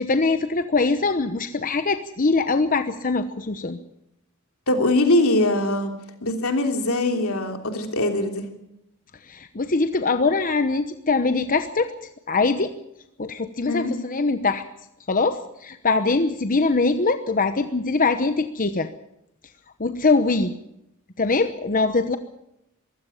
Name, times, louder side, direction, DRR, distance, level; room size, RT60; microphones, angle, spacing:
voice 1, 0.0-3.8 9.2-11.9 12.3-12.7 13.2-14.6 15.1-18.9 19.8-20.5 21.2-22.2, left 3 dB, 40° left, 9 dB, 0.9 m, -22 dB
voice 2, 4.7-5.9 6.2-8.4 13.7-13.9, left 1 dB, 70° left, 5 dB, 3.3 m, -22 dB
23.5 x 15.5 x 7.2 m, 0.82 s
head